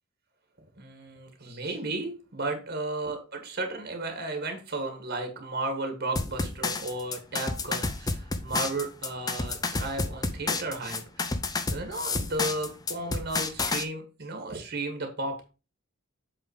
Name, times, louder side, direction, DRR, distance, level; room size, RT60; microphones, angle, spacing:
voice 1, 0.8-11.3 11.7-15.5, right 2 dB, 50° right, 5 dB, 1.7 m, -34 dB
sound 1, 6.2-13.8, left 3 dB, 20° left, 0.6 m, -30 dB
7.9 x 3.9 x 4.9 m, 0.31 s
head